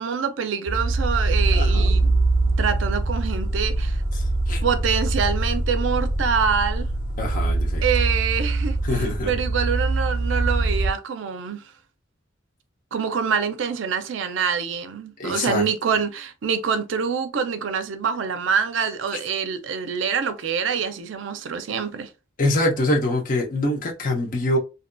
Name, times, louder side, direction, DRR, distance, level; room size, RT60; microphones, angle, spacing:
voice 1, 0.0-2.1 2.6-4.0 4.6-6.9 7.8-11.6 12.9-22.1, right 6 dB, 70° right, 0.4 m, -25 dB
sound 1, 0.7-10.9, right 2 dB, 45° right, 0.7 m, -23 dB
voice 2, 1.5-2.0 4.1-4.6 7.2-7.8 8.8-9.3 15.2-15.6 22.4-24.6, left 1 dB, 45° left, 0.7 m, -24 dB
2.7 x 2.5 x 2.2 m
head